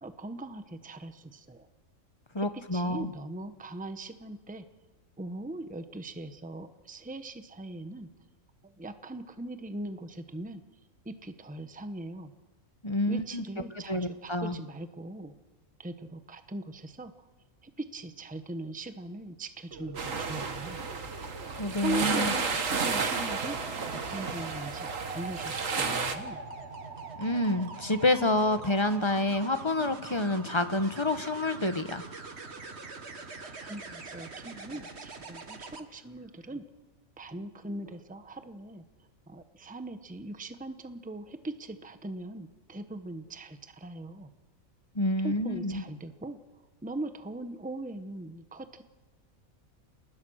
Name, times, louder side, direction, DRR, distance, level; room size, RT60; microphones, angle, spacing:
voice 1, 0.0-1.7 2.4-2.5 2.7-4.6 5.2-8.1 8.6-10.6 11.0-12.3 13.1-15.3 15.8-17.1 17.6-20.8 21.8-23.6 23.9-26.4 33.4-36.6 37.2-44.3 45.2-46.4 46.8-48.8, right 2 dB, 5° right, 9 dB, 1.1 m, -40 dB
voice 2, 2.3-3.1 12.8-13.4 13.9-14.6 21.6-22.3 27.2-32.0 44.9-45.8, left 2 dB, 20° left, 9 dB, 1.2 m, -28 dB
sound 1, 19.7-35.8 37.7-38.0, right 3 dB, 50° right, 1.9 m, -43 dB
sound 2, 20.0-26.2, right 4 dB, 65° right, 2.0 m, -32 dB
28.5 x 20.5 x 6.5 m, 1.2 s
omnidirectional pair, 1.5 m